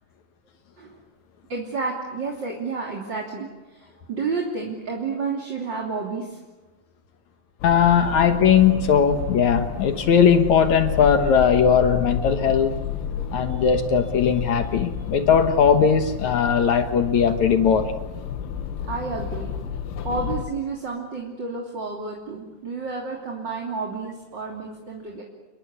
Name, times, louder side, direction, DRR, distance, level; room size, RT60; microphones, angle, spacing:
voice 1, 1.5-6.4 18.8-19.5 20.0-25.2, right 4 dB, 30° right, -1 dB, 3.0 m, -30 dB
sound 1, 7.6-20.5, left 7 dB, 90° left, 3.8 m, -31 dB
voice 2, 7.6-12.7 13.3-17.9, left 7 dB, 65° left, 8 dB, 1.8 m, -19 dB
29.0 x 22.0 x 8.3 m, 1.2 s
omnidirectional pair, 5.2 m